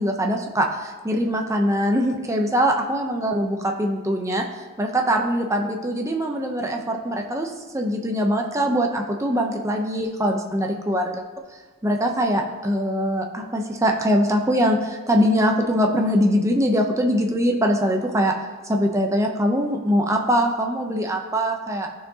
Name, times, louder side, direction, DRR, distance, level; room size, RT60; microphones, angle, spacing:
voice 1, 0.0-4.4 4.8-11.2 11.8-18.3 18.7-21.9, equal, 15° right, 2 dB, 0.7 m, -22 dB
13.0 x 4.6 x 2.8 m, 1.4 s
head